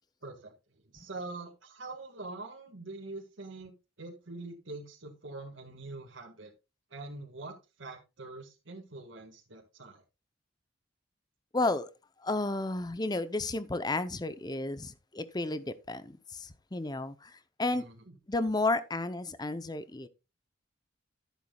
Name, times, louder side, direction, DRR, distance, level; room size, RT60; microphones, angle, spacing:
voice 1, 0.2-0.5 0.9-3.7 4.0-6.5 6.9-10.0 17.7-18.1, right 2 dB, 75° right, 1.8 m, -44 dB
voice 2, 11.5-11.9 12.2-17.8 18.3-20.1, left 2 dB, 20° left, 0.7 m, -32 dB
11.5 x 10.5 x 2.3 m
head